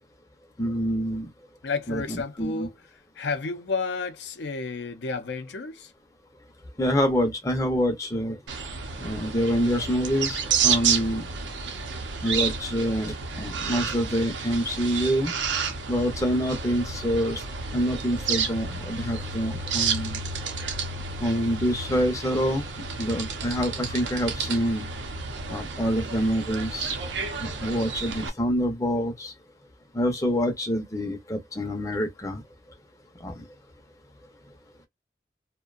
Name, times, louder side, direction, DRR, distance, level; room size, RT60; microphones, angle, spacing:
voice 1, 0.6-1.3 1.9-2.7 6.8-8.4 9.0-11.2 12.2-15.3 15.9-17.4 17.7-20.2 21.2-22.6 23.0-24.9 25.5-27.0 27.4-29.3 29.9-32.4 33.2-33.4, equal, 20° left, 0.5 m, -26 dB
voice 2, 1.6-2.8 3.2-5.9, left 4 dB, 75° left, 0.5 m, -31 dB
sound 1, 8.5-28.3, right 5 dB, 90° right, 0.6 m, -31 dB
2.5 x 2.1 x 2.3 m
head